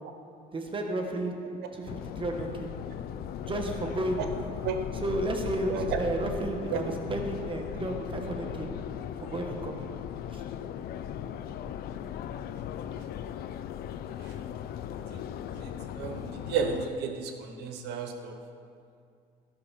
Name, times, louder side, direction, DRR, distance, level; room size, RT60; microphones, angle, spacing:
voice 1, 0.5-2.7 3.5-4.3 5.0-8.7 9.2-9.9 10.3-10.4, right 1 dB, 30° right, 3 dB, 1.1 m, -32 dB
Subway metro underground, 1.9-16.9, left 9 dB, 65° left, 0.4 m, -38 dB
voice 2, 15.5-18.4, right 7 dB, 85° right, 5 dB, 1.0 m, -33 dB
11.5 x 5.8 x 5.7 m, 2.3 s
cardioid pair, 110°, 17 cm